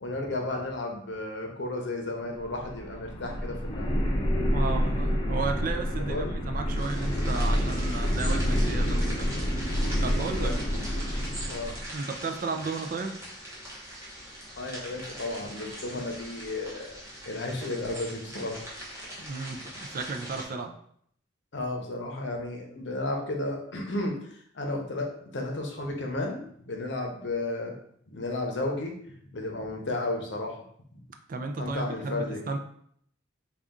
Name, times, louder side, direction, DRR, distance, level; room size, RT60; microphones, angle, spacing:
voice 1, 0.0-3.9 6.0-6.3 10.2-10.8 11.4-11.9 14.6-16.9 17.3-18.7 19.0-19.3 21.5-27.7 28.1-30.6 30.9-31.0 31.6-32.4, left 2 dB, 60° left, 2 dB, 0.7 m, -33 dB
sound 1, 2.3-11.9, equal, 25° left, 0.5 m, -28 dB
voice 2, 4.5-9.3 10.0-10.6 11.9-13.2 19.2-20.7 31.3-32.6, right 3 dB, 45° right, 4 dB, 0.4 m, -34 dB
sound 2, 6.8-20.4, right 1 dB, 15° right, 1.0 m, -42 dB
4.0 x 2.4 x 3.6 m, 0.66 s
head